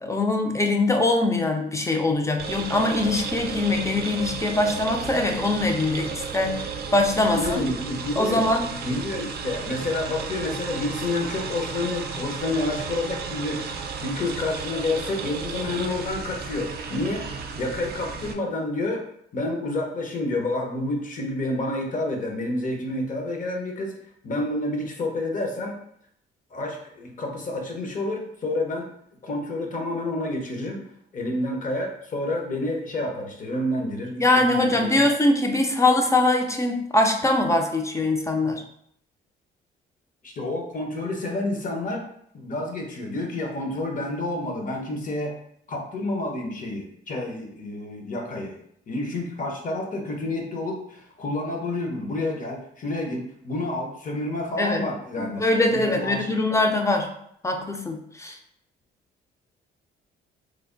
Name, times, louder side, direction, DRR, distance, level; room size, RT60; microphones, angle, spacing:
voice 1, 0.0-7.7 8.2-8.7 34.2-38.6 54.6-54.8 55.2-57.1 57.4-58.4, left 2 dB, 15° left, 3 dB, 0.5 m, -22 dB
sound 1, 2.4-18.3, right 5 dB, 55° right, 0.5 m, -34 dB
voice 2, 7.3-8.5 8.8-19.0 19.3-23.9 24.2-25.8 26.5-28.9 29.2-30.8 31.1-35.0 40.2-42.0 42.3-45.3 45.7-48.6 48.9-55.4 55.7-56.3, left 2 dB, 40° left, 1 dB, 0.9 m, -29 dB
3.3 x 2.1 x 3.8 m, 0.70 s
cardioid pair, 90°, 20 cm